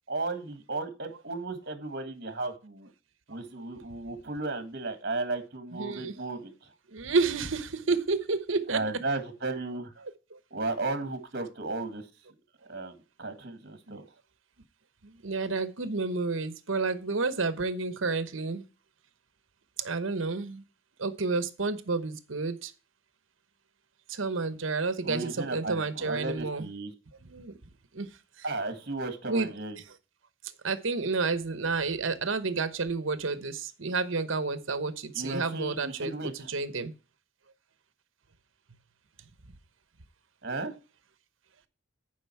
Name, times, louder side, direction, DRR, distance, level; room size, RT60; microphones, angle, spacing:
voice 1, 0.1-2.9 3.3-6.7 8.7-9.9 10.5-12.1 12.7-14.0 25.0-26.9 28.4-29.8 35.1-36.5 40.4-40.7, right 2 dB, 50° right, 7 dB, 1.8 m, -34 dB
voice 2, 5.7-6.1 6.9-8.8 10.3-10.4 13.9-14.0 15.0-18.7 19.8-20.6 21.0-22.7 24.1-26.6 27.2-27.6 27.9-28.1 28.4-28.5 29.3-29.5 30.6-36.1 36.5-36.9, right 4 dB, 75° right, 12 dB, 1.0 m, -30 dB
10.5 x 5.1 x 4.5 m, 0.32 s
head